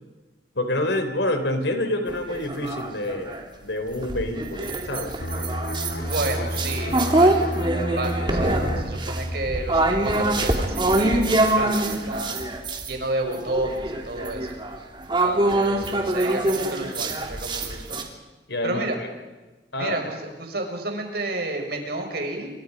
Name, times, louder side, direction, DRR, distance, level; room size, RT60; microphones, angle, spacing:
voice 1, 0.6-5.2 18.5-19.1 19.7-20.0, left 1 dB, 80° left, 7 dB, 3.8 m, -27 dB
sound 1, 2.1-3.4 4.0-12.9 13.3-18.0, right 1 dB, 25° right, 3.1 m, -24 dB
sound 2, 5.2-10.6 10.9-11.2, equal, 60° left, 2.1 m, -31 dB
voice 2, 6.1-12.4 12.9-14.5 15.2-18.0 18.6-19.0 19.8-22.5, right 2 dB, 60° right, 3 dB, 6.1 m, -31 dB
29.0 x 25.0 x 5.3 m, 1.2 s
head